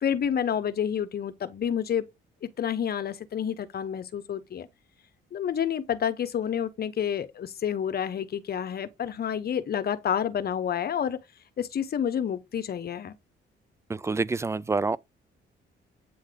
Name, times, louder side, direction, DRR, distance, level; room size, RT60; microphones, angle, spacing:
voice 1, 0.0-2.0 2.4-4.7 5.3-11.2 11.6-13.2, left 8 dB, 50° left, 0.9 m, -29 dB
voice 2, 13.9-15.0, right 3 dB, 15° right, 0.3 m, -27 dB
8.5 x 3.2 x 3.8 m
cardioid pair, 90°, 20 cm